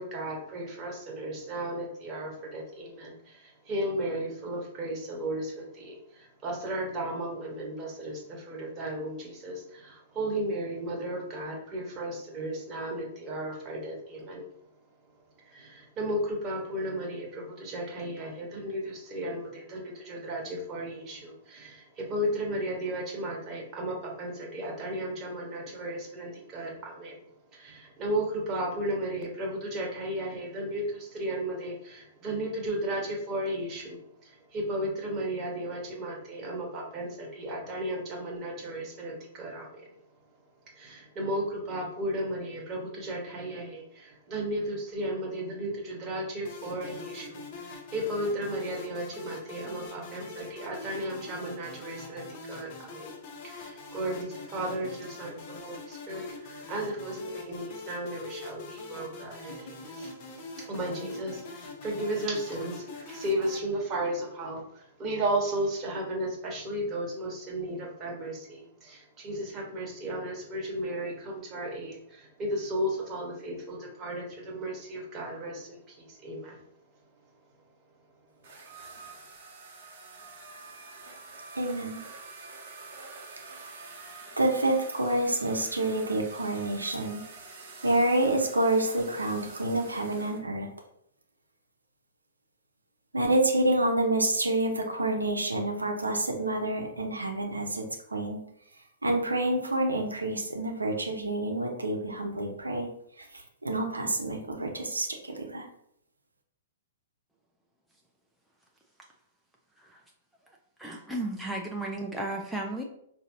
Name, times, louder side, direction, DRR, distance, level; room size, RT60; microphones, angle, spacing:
voice 1, 0.0-14.5 15.4-27.2 27.5-40.0 40.7-53.2 53.4-60.1 60.6-76.7, right 1 dB, 25° right, -1 dB, 1.2 m, -34 dB
sound 1, 46.4-63.6, left 2 dB, 40° left, 0.8 m, -43 dB
sound 2, 78.4-90.4, right 3 dB, 45° right, 1.1 m, -47 dB
voice 2, 81.6-82.0 84.4-87.2 87.8-90.7 93.1-98.4 99.0-102.9 103.2-105.7, right 2 dB, 80° right, 2 dB, 0.7 m, -28 dB
voice 3, 110.8-112.8, right 1 dB, ahead, -1 dB, 0.5 m, -34 dB
5.0 x 2.7 x 2.6 m, 0.72 s
figure-of-eight pair, 110°, 0 cm